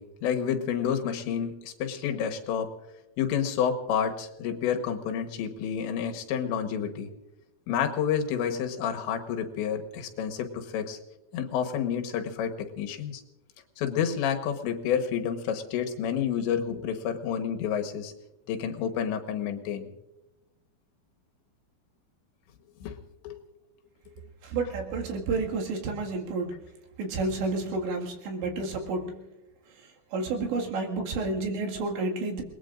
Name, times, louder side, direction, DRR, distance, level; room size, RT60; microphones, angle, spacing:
voice 1, 0.0-2.7 3.2-7.1 7.7-11.0 11.3-13.2 13.8-18.1 18.5-19.9 22.8-23.0 23.2-23.4, left 8 dB, 85° left, 5 dB, 3.6 m, -29 dB
voice 2, 24.5-26.5 27.0-29.1 30.1-32.4, right 3 dB, 85° right, 0 dB, 4.3 m, -30 dB
28.5 x 20.0 x 2.5 m, 0.97 s
omnidirectional pair, 5.0 m